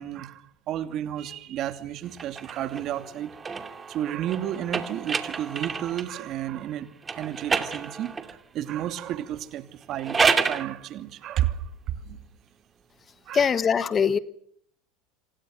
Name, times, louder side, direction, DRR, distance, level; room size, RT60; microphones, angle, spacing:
voice 1, 0.0-3.3 3.9-6.9 7.1-10.2 10.5-11.6 12.1-12.2 13.3-13.5, right 11 dB, 50° right, 2.7 m, -32 dB
sound 1, 2.1-6.2 7.0-8.4 9.8-10.7, right 5 dB, 20° right, 2.5 m, -29 dB
voice 2, 13.3-14.2, left 7 dB, 30° left, 1.2 m, -22 dB
27.5 x 26.0 x 6.7 m
supercardioid pair, 100°, 0 cm